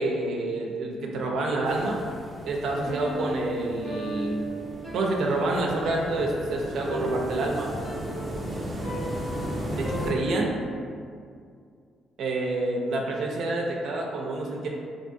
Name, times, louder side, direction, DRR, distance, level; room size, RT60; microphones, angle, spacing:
voice 1, 0.0-2.0 2.5-4.5 4.9-7.7 9.7-10.6 12.2-14.7, right 2 dB, 75° right, -1 dB, 0.4 m, -28 dB
sound 1, 1.6-10.1, equal, 20° right, 0.6 m, -36 dB
Piano, 2.8-10.7, right 1 dB, 85° left, 1.5 m, -36 dB
3.4 x 2.6 x 2.5 m, 2.2 s
cardioid pair, 90°, 0 cm